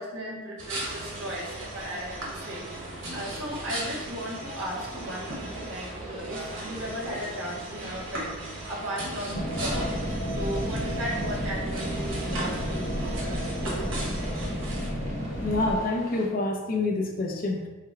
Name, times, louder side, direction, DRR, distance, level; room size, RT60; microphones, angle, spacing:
voice 1, 0.0-8.3 8.7-9.9 10.3-14.1, equal, 75° right, -3 dB, 1.4 m, -36 dB
sound 1, 0.6-14.9, right 1 dB, 60° right, 1.1 m, -38 dB
sound 2, 0.7-16.3, right 1 dB, 35° right, 0.8 m, -45 dB
sound 3, 9.3-15.8, equal, 65° left, 0.8 m, -31 dB
voice 2, 15.4-17.7, left 2 dB, 40° left, 1 dB, 0.5 m, -27 dB
5.0 x 2.2 x 4.6 m, 1.2 s
head